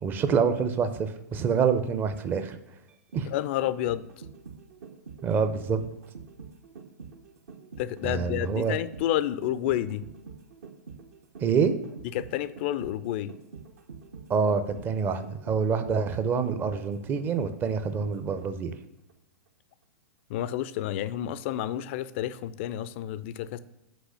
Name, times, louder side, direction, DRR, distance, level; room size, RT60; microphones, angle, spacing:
voice 1, 0.0-2.6 3.1-3.3 5.2-5.8 8.0-8.8 11.4-11.7 14.3-18.7, right 6 dB, 20° right, 10 dB, 0.6 m, -26 dB
sound 1, 2.9-18.8 19.1-19.2, right 5 dB, 55° right, 0.8 m, -46 dB
voice 2, 3.3-4.0 7.8-10.0 12.1-13.3 20.3-23.6, left 12 dB, 40° left, 15 dB, 0.4 m, -30 dB
6.2 x 4.8 x 6.4 m, 0.86 s
figure-of-eight pair, 105°, 10 cm